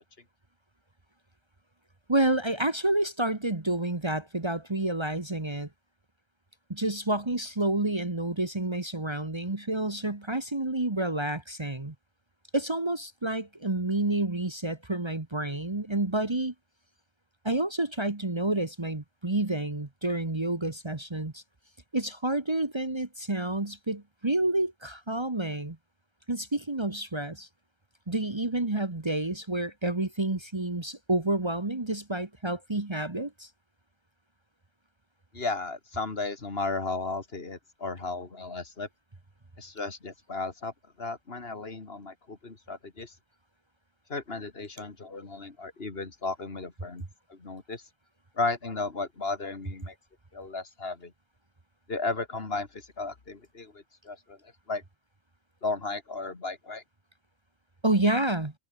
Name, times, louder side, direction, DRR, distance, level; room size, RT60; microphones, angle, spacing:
voice 1, 2.1-5.7 6.7-11.9 12.5-16.5 17.4-21.4 21.9-25.8 26.3-27.5 28.1-33.5 57.8-58.5, right 2 dB, 25° right, 1.5 m, -29 dB
voice 2, 35.3-38.9 39.6-40.7 41.0-43.1 44.1-47.8 48.4-49.9 50.3-51.1 51.9-54.4 54.7-54.8 55.6-56.8, left 3 dB, 55° left, 2.5 m, -34 dB
omnidirectional pair, 1.2 m